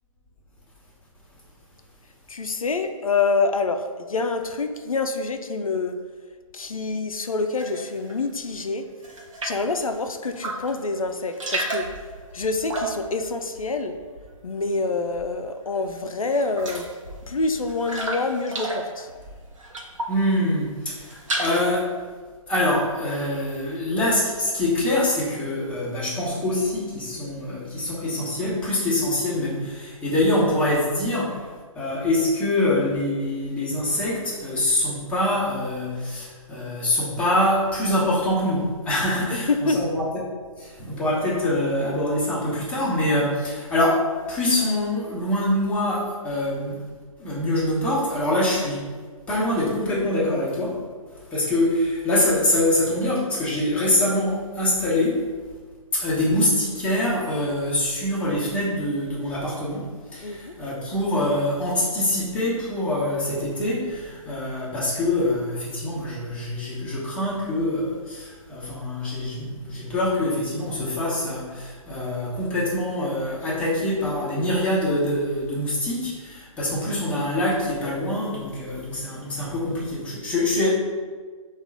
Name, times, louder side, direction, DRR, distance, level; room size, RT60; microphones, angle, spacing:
voice 1, 2.3-6.0 6.5-8.9 9.4-11.9 12.3-14.0 14.4-16.9 17.3-19.1 39.3-39.8 60.2-60.5, left 3 dB, 75° left, 7 dB, 0.4 m, -26 dB
sound 1, 7.6-8.2 8.5-9.7 10.3-10.8 11.1-14.5 14.8-15.5 15.9-16.0 16.3-20.3 20.7-21.8, right 2 dB, 65° right, 0.8 m, -33 dB
voice 2, 20.1-21.9 22.5-40.0 40.6-46.8 47.2-48.9 49.3-50.8 51.3-55.3 55.9-80.7, left 1 dB, 5° left, -8 dB, 0.8 m, -24 dB
3.7 x 2.4 x 4.5 m, 1.5 s
figure-of-eight pair, 130°, 18 cm